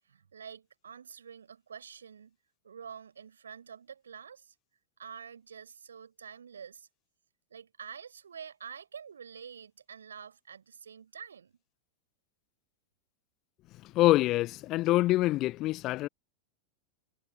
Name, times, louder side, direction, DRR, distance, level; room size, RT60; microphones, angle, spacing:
voice 1, 0.1-2.4 2.6-4.5 5.0-6.9 7.5-11.6, right 7 dB, 70° right, 5.0 m, -47 dB
voice 2, 13.9-16.1, left 17 dB, 35° left, 1.0 m, -25 dB
figure-of-eight pair, 90°, 0 cm